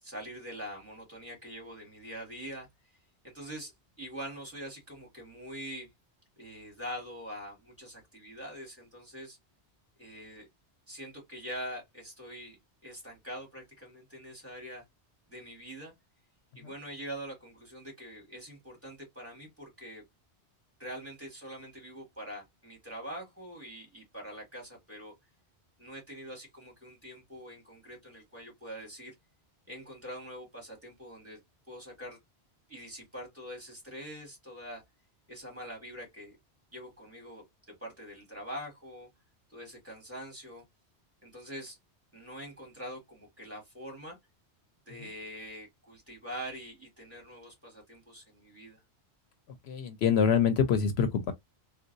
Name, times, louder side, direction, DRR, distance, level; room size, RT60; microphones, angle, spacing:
voice 1, 0.0-3.0 3.2-3.7 4.0-5.9 6.4-9.4 10.0-10.5 10.9-14.8 15.3-15.9 16.5-20.0 20.8-25.1 25.8-29.1 29.7-31.4 31.7-32.2 32.7-34.8 35.3-36.3 36.7-39.1 39.5-40.6 41.2-41.8 42.1-44.2 44.9-48.8, equal, 10° right, 2.2 m, -44 dB
voice 2, 49.7-51.3, left 7 dB, 75° left, 0.8 m, -25 dB
3.7 x 2.3 x 2.5 m
omnidirectional pair, 1.1 m